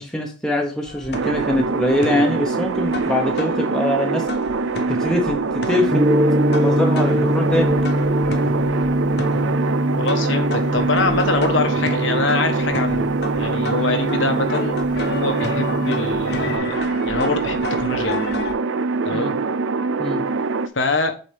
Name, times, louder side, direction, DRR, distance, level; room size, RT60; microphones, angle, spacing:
voice 1, 0.0-4.3 4.9-5.4 5.7-6.0 6.6-7.8 19.1-19.4 20.0-20.3, left 1 dB, 5° left, 1 dB, 0.9 m, -23 dB
sound 1, 0.9-4.0 4.3-18.5, left 3 dB, 55° left, 0.9 m, -34 dB
sound 2, 1.1-20.7, right 4 dB, 80° right, 0.5 m, -24 dB
Gong, 5.9-16.6, equal, 20° right, 0.7 m, -23 dB
voice 2, 10.0-14.8 15.0-16.8 17.0-18.2 19.0-19.3 20.7-21.1, left 3 dB, 80° left, 6 dB, 1.3 m, -24 dB
8.4 x 4.0 x 3.5 m, 0.37 s
head